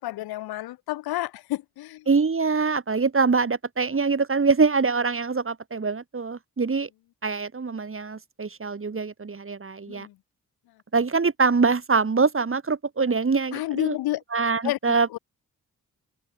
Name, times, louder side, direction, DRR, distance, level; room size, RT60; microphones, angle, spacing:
voice 1, 0.0-2.1 9.9-10.2 13.5-14.2 14.6-15.2, left 16 dB, 90° left, 1.3 m, -30 dB
voice 2, 2.1-6.9 7.2-10.1 10.9-14.0 14.3-15.1, right 4 dB, 35° right, 2.1 m, -24 dB
open air
supercardioid pair, 45°, 36 cm